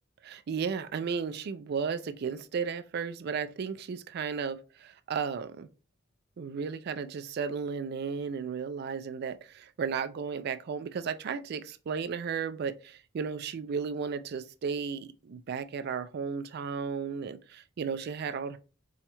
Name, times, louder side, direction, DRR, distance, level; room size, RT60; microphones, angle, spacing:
voice 1, 0.2-5.7 6.4-18.6, right 6 dB, 55° right, 0.3 m, -34 dB
4.1 x 2.4 x 2.9 m
head